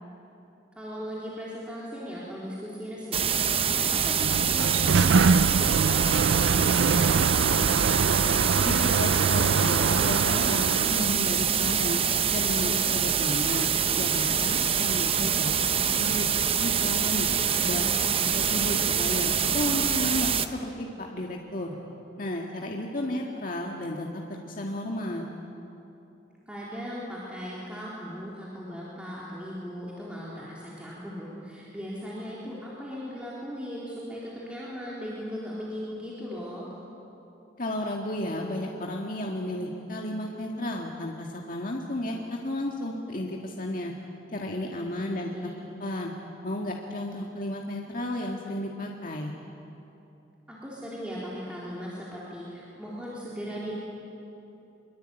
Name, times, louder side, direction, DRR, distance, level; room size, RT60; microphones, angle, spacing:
voice 1, 0.8-7.6 17.5-18.1 26.5-36.7 45.0-45.6 50.5-53.8, equal, 5° right, -7 dB, 3.7 m, -38 dB
sound 1, 3.1-20.5, right 7 dB, 30° right, 0.9 m, -25 dB
Sliding door, 3.9-11.2, right 5 dB, 85° right, 0.5 m, -24 dB
voice 2, 8.6-12.0 12.3-16.3 16.6-17.3 17.6-17.9 18.4-21.7 22.2-25.3 37.6-43.9 44.3-45.3 45.8-46.1 46.4-49.3, left 1 dB, 50° left, 0 dB, 1.8 m, -33 dB
24.0 x 23.0 x 9.0 m, 2.9 s
head